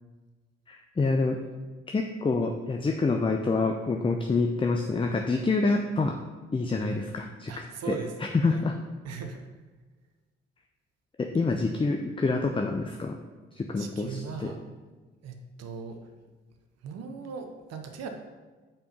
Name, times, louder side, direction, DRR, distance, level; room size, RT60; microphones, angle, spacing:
voice 1, 0.7-1.4 1.9-6.1 6.5-7.5 7.9-8.0 8.4-8.7 11.2-13.1 13.6-14.5, left 3 dB, 15° left, 4 dB, 0.6 m, -27 dB
voice 2, 7.5-8.7 9.0-9.5 13.8-14.6 15.2-16.0 16.8-18.1, right 5 dB, 50° right, 5 dB, 0.8 m, -39 dB
5.5 x 4.4 x 5.3 m, 1.3 s
figure-of-eight pair, 40°, 32 cm